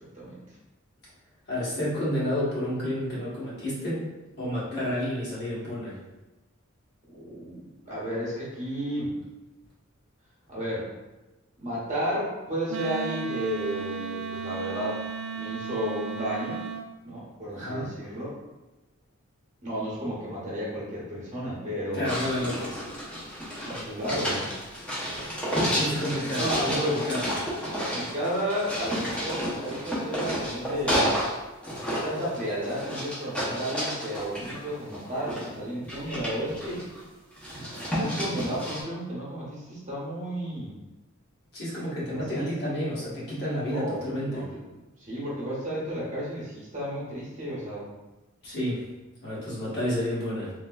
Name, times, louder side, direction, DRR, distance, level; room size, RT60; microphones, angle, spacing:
voice 1, 1.5-4.1 4.4-6.0 17.5-17.9 21.9-22.7 25.7-27.3 41.5-44.5 48.4-48.8 49.2-50.5, equal, 50° left, -8 dB, 1.2 m, -30 dB
voice 2, 7.1-9.2 10.5-10.9 11.6-15.0 15.3-16.6 17.0-18.4 19.6-22.2 23.6-24.5 26.3-27.0 27.8-31.1 31.9-36.8 37.9-40.7 42.1-42.5 43.7-44.6 45.0-47.9, equal, 35° right, -6 dB, 1.0 m, -32 dB
Wind instrument woodwind instrument, 12.7-16.9, right 6 dB, 75° right, 0.3 m, -35 dB
sound 1, 22.0-31.3 31.6-35.5 35.8-37.0 37.4-38.8, equal, 5° left, 0.7 m, -31 dB
3.2 x 2.8 x 2.3 m, 1.1 s
head